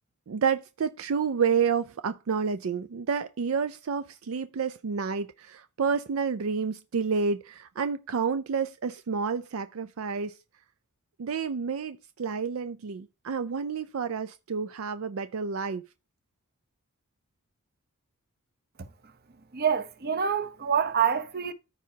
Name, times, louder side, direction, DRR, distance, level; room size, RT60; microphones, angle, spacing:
voice 1, 0.3-10.4 11.2-15.8, right 6 dB, 70° right, 0.4 m, -29 dB
voice 2, 19.5-21.5, right 7 dB, 45° right, 0.8 m, -26 dB
13.5 x 4.7 x 2.8 m
head